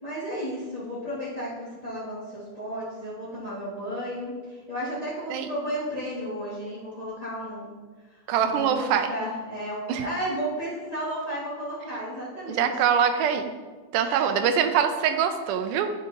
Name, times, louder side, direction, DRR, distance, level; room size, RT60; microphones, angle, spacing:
voice 1, 0.0-7.7 8.1-12.7 14.0-14.3, equal, 20° left, -11 dB, 1.0 m, -33 dB
voice 2, 8.3-9.1 9.9-10.0 12.5-13.5 13.9-15.9, right 8 dB, 90° right, 7 dB, 2.1 m, -23 dB
10.5 x 5.1 x 2.7 m, 1.4 s
omnidirectional pair, 3.6 m